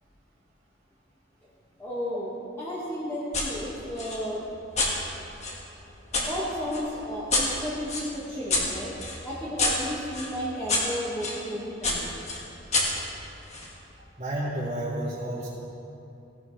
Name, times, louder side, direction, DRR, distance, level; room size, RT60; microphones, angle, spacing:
voice 1, 1.8-2.3 2.6-4.4 6.1-8.9 9.2-12.1, equal, 15° left, -10 dB, 1.8 m, -33 dB
sound 1, 3.3-3.5 4.0-6.3 6.7-11.4 11.8-13.7, left 2 dB, 35° left, 1.8 m, -29 dB
voice 2, 14.2-15.5, right 1 dB, 30° right, -11 dB, 2.0 m, -31 dB
17.0 x 11.0 x 3.3 m, 2.7 s
head